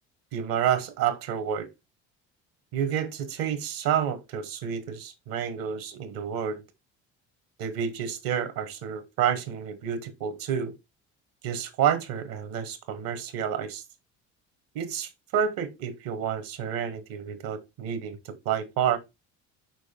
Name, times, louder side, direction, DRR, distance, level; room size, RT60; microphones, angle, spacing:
voice 1, 0.3-1.7 2.7-6.6 7.6-10.7 11.4-13.8 14.7-19.0, right 8 dB, 70° right, 1.5 m, -29 dB
6.3 x 4.9 x 4.4 m
hypercardioid pair, 70°, 36 cm